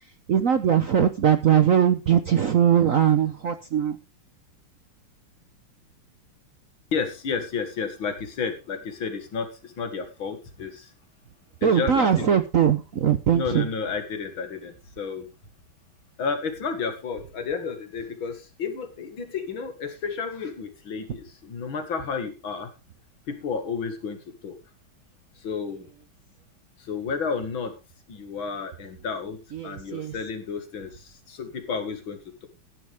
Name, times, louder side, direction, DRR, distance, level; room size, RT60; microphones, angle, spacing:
voice 1, 0.3-4.0 11.6-13.7 29.5-30.1, right 9 dB, 60° right, 9 dB, 0.9 m, -21 dB
voice 2, 6.9-10.9 11.6-12.4 13.3-15.3 16.2-22.7 23.3-24.2 24.4-24.6 25.4-25.9 26.8-27.7 28.1-32.5, left 5 dB, 70° left, 7 dB, 2.7 m, -31 dB
14.0 x 11.0 x 3.5 m, 0.29 s
omnidirectional pair, 2.3 m